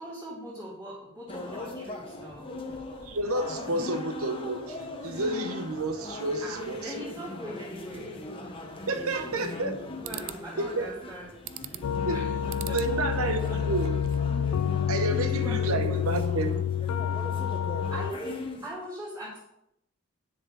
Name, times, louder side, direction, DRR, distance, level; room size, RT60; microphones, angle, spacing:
voice 1, 0.0-2.5 3.6-3.9 6.4-8.2 8.9-11.3 11.6-11.8 12.1-12.4 12.7-13.3 14.9-15.0 15.3-16.0 17.9-19.4, equal, 15° right, 2.9 m, -41 dB
sound 1, 1.3-18.7, left 2 dB, 25° left, 1.1 m, -39 dB
voice 2, 3.0-7.1 8.9-9.8 10.6-10.9 12.0-12.2 12.7-14.0 14.9-16.7, right 2 dB, 75° right, 0.9 m, -30 dB
sound 2, 9.1-9.7 10.0-10.4 11.5-12.0 12.5-12.9 13.3-14.3, right 11 dB, 60° right, 0.4 m, -41 dB
sound 3, 11.8-18.1, left 8 dB, 80° left, 0.3 m, -28 dB
9.8 x 6.9 x 4.0 m
head